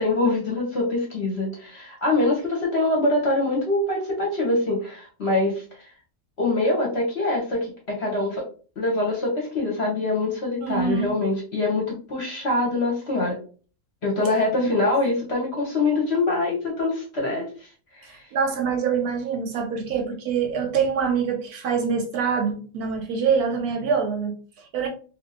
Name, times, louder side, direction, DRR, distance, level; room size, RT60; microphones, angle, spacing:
voice 1, 0.0-5.9 6.4-8.4 8.8-13.4 14.0-17.7 17.9-18.2, left 2 dB, 50° left, 0.9 m, -24 dB
voice 2, 10.6-11.1 14.6-14.8 18.0-24.9, right 6 dB, 70° right, 1.0 m, -25 dB
2.8 x 2.6 x 2.7 m
omnidirectional pair, 1.8 m